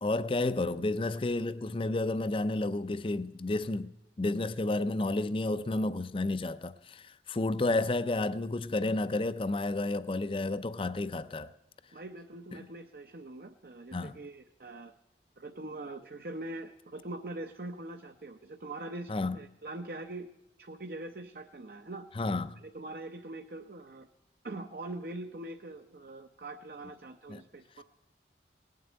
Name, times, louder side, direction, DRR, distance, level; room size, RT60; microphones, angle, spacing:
voice 1, 0.0-11.5 12.6-12.7 13.9-14.1 19.1-19.4 22.2-22.6 27.3-27.4, left 2 dB, 30° left, 0.5 m, -31 dB
voice 2, 11.9-14.9 15.4-20.3 20.6-22.1 22.6-24.1 24.4-27.8, right 2 dB, 55° right, 0.7 m, -43 dB
18.5 x 7.5 x 9.8 m
head